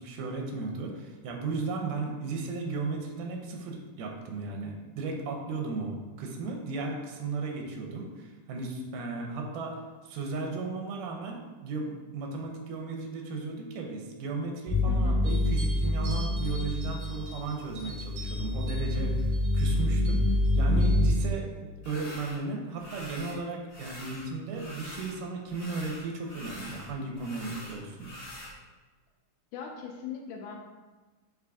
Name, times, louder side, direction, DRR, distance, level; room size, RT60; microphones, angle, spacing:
voice 1, 0.0-9.8 10.0-28.1, right 3 dB, 80° right, 1 dB, 2.2 m, -35 dB
sound 1, 14.7-17.3 17.7-21.1, left 1 dB, 45° right, 0.8 m, -26 dB
voice 2, 14.9-15.2 29.5-30.6, left 7 dB, 80° left, 1 dB, 2.0 m, -39 dB
sound 2, 15.2-21.0, right 1 dB, 60° right, 1.4 m, -46 dB
sound 3, 21.8-22.4 22.8-23.4 23.7-25.2 25.5-28.5, left 1 dB, 60° left, 1.4 m, -44 dB
5.3 x 2.5 x 3.4 m, 1.3 s
omnidirectional pair, 3.8 m